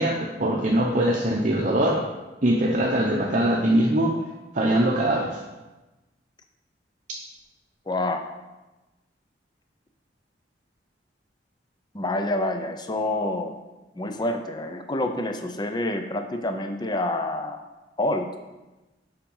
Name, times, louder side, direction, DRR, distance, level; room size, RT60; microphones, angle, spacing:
voice 1, 0.0-2.0 2.4-4.2 4.5-5.4, right 1 dB, 45° right, -2 dB, 0.8 m, -22 dB
voice 2, 7.9-8.4 11.9-13.6 13.9-17.6 18.0-18.3, left 1 dB, 25° left, 6 dB, 0.6 m, -27 dB
7.3 x 5.1 x 5.4 m, 1.1 s
head